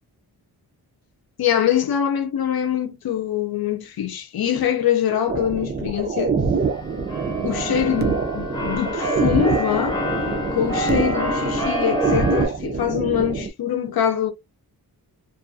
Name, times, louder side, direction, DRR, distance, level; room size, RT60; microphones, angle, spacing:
voice 1, 1.4-6.4 7.4-10.0 10.5-14.3, left 9 dB, 70° left, 0.7 m, -23 dB
sound 1, 5.3-13.5, right 5 dB, 30° right, 0.4 m, -25 dB
Keyboard (musical), 6.6-12.5, left 1 dB, 10° left, 0.8 m, -27 dB
2.4 x 2.3 x 2.5 m
wide cardioid pair, 155°, 38 cm